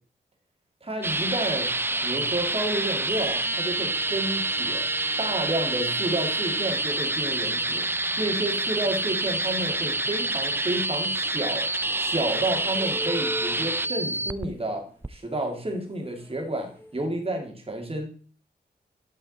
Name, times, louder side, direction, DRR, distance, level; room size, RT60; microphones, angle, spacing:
voice 1, 0.8-1.7 2.0-4.8 5.2-7.8 8.2-11.6 12.0-14.8 15.1-18.1, right 1 dB, 30° right, 2 dB, 2.5 m, -30 dB
sound 1, 1.0-14.5 15.0-15.1, right 2 dB, 10° right, 0.4 m, -27 dB
sound 2, 10.1-11.3 11.7-17.1, equal, 10° left, 1.4 m, -41 dB
11.0 x 5.6 x 4.2 m, 0.41 s
wide cardioid pair, 95°, 18 cm